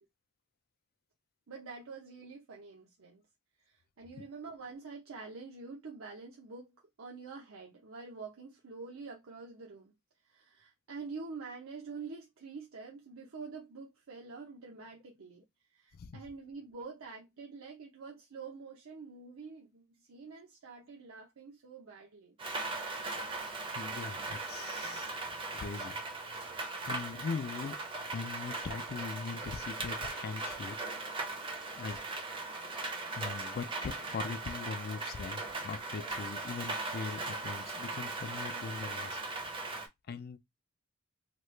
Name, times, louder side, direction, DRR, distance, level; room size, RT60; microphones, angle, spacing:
voice 1, 1.5-3.2 3.6-9.9 10.2-15.4 15.7-22.4, right 4 dB, 65° right, 0.6 m, -47 dB
Rain, 22.4-39.9, right 2 dB, 25° right, 0.6 m, -39 dB
voice 2, 23.5-25.1 25.5-26.0 26.9-27.8 28.1-30.8 31.8-32.0 33.2-39.2 40.1-40.4, left 5 dB, 45° left, 0.3 m, -41 dB
2.9 x 2.3 x 3.1 m
head